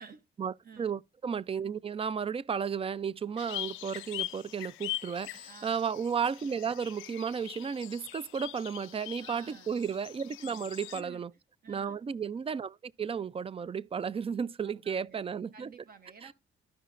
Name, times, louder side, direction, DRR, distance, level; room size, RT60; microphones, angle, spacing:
voice 1, 0.4-11.3 11.7-15.7 16.2-16.3, right 6 dB, 30° right, 0.4 m, -34 dB
sound 1, 3.4-11.0, left 16 dB, 85° left, 0.5 m, -42 dB
voice 2, 5.5-5.8 9.2-9.7 10.9-11.2 11.6-12.0 14.6-15.2 15.5-16.3, right 6 dB, 50° right, 0.9 m, -52 dB
13.0 x 5.5 x 2.5 m
cardioid pair, 90°, 20 cm